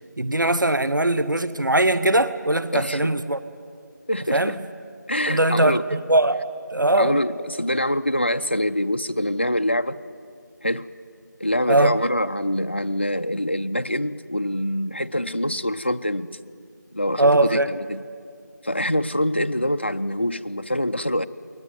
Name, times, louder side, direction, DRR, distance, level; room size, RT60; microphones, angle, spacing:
voice 1, 0.2-3.4 4.3-4.5 5.3-6.4 6.7-7.2 11.7-12.0 17.2-17.7, right 2 dB, 85° right, 13 dB, 1.0 m, -20 dB
voice 2, 2.7-3.2 4.1-4.6 5.1-5.8 6.9-10.0 10.6-10.9 11.4-16.4 16.9-18.0 18.6-21.3, left 1 dB, 35° left, 9 dB, 0.5 m, -25 dB
22.0 x 19.0 x 9.3 m, 2.4 s
figure-of-eight pair, 175°, 10 cm